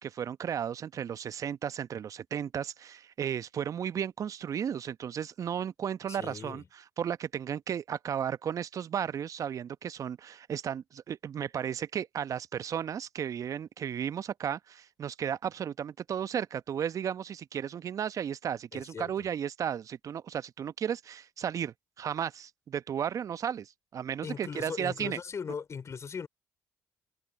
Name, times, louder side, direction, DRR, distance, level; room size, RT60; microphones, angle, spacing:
voice 1, 0.0-25.2, right 8 dB, 55° right, 0.9 m, -34 dB
voice 2, 6.1-6.7 18.7-19.3 24.2-26.3, left 6 dB, 45° left, 3.7 m, -39 dB
hypercardioid pair, 50°, 7 cm